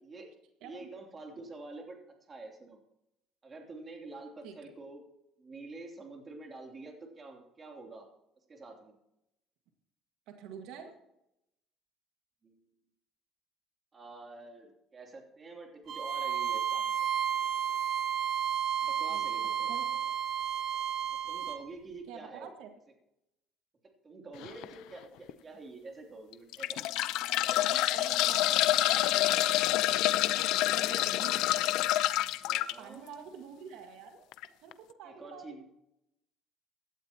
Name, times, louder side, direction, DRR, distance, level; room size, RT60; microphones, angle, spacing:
voice 1, 0.6-2.0 2.3-2.8 3.4-5.1 5.4-8.1 8.5-9.0 12.4-12.6 13.9-17.1 18.8-19.7 21.3-22.5 24.0-27.0 30.8-31.5 32.4-33.0 35.0-35.6, right 3 dB, 30° right, 2 dB, 3.0 m, -47 dB
voice 2, 10.3-10.9 19.1-19.3 19.7-19.9 22.1-22.7 27.6-29.7 30.7-31.6 32.8-34.2 34.6-34.7 35.0-35.6, right 7 dB, 85° right, 5 dB, 1.8 m, -47 dB
Bowed string instrument, 15.9-21.6, right 9 dB, 50° right, 1.7 m, -32 dB
sound 1, 24.4-24.6 25.3-25.4 26.3-32.7 34.3-34.4 34.7-34.8, left 14 dB, 80° left, 0.6 m, -27 dB
16.5 x 12.0 x 2.9 m, 0.84 s
cardioid pair, 125°, 0 cm